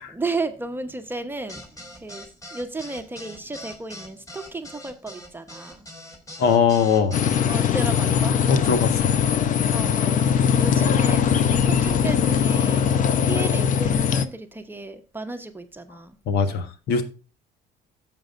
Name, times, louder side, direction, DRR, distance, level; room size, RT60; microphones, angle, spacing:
voice 1, 0.1-5.9 7.4-8.4 9.7-12.9 13.2-16.2, right 3 dB, 10° right, 1.0 m, -34 dB
sound 1, 1.5-7.4, left 1 dB, 20° left, 3.0 m, -41 dB
voice 2, 6.4-7.2 8.5-9.1 16.3-17.0, left 6 dB, 75° left, 1.4 m, -21 dB
sound 2, 7.1-14.3, left 7 dB, 50° left, 0.7 m, -21 dB
12.5 x 7.6 x 2.5 m
cardioid pair, 110°, 17 cm